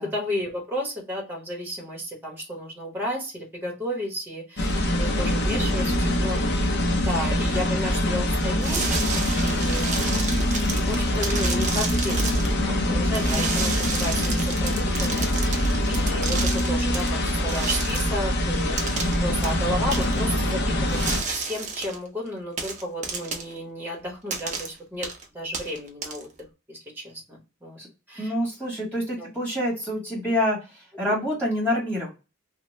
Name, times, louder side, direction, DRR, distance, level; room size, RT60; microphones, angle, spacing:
voice 1, 0.0-6.4 6.9-8.8 9.4-10.3 10.7-16.4 16.7-18.8 19.2-21.0 21.3-25.1 25.3-26.3 26.7-27.8 28.1-28.3 29.2-29.3, equal, 10° right, -1 dB, 0.9 m, -33 dB
sound 1, 4.6-21.2, left 1 dB, 50° left, 0.6 m, -24 dB
sound 2, 8.6-12.5 13.1-17.1 17.5-18.1 18.8-19.2 19.4-19.5 19.9-20.2 20.9-22.0 22.6-23.5 24.3-24.7 25.0-25.2 25.5-26.4, right 4 dB, 35° right, 0.6 m, -31 dB
voice 2, 12.6-13.1 27.8-27.9 28.2-32.1, left 1 dB, 5° left, -6 dB, 1.3 m, -27 dB
2.8 x 2.1 x 3.0 m, 0.29 s
head